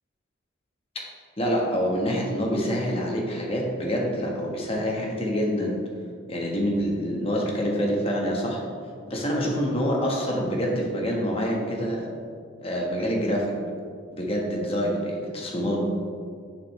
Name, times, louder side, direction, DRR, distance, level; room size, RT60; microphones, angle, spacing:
voice 1, 1.4-5.8 6.3-8.6 9.1-12.1 12.6-13.5 14.2-15.9, equal, 30° left, -1 dB, 1.3 m, -26 dB
10.0 x 6.5 x 3.2 m, 2.2 s
head